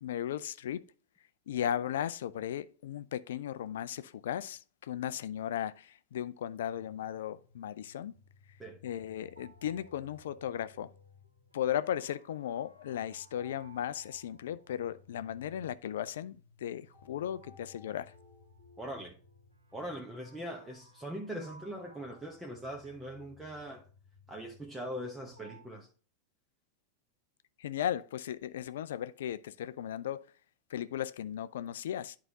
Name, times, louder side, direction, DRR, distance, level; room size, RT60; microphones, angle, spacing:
voice 1, 0.0-0.9 1.5-8.1 8.8-10.9 11.5-18.1 27.6-30.2 30.7-32.2, left 10 dB, 60° left, 0.4 m, -36 dB
sound 1, 6.6-25.6, left 2 dB, 85° right, 2.8 m, -59 dB
voice 2, 18.8-19.1 19.7-23.9 24.3-25.9, equal, 5° right, 1.0 m, -41 dB
11.0 x 4.8 x 2.8 m
figure-of-eight pair, 90°, 0 cm